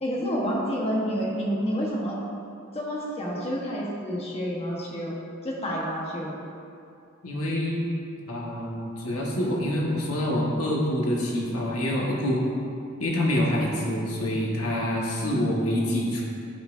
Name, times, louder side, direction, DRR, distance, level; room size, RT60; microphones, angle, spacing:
voice 1, 0.0-2.2 2.7-5.2 5.4-6.4 15.2-15.4, equal, 30° left, -4 dB, 1.0 m, -29 dB
voice 2, 7.2-7.9 8.3-12.4 13.0-16.2, left 1 dB, 90° left, -3 dB, 1.3 m, -26 dB
11.0 x 5.4 x 2.5 m, 2.5 s
head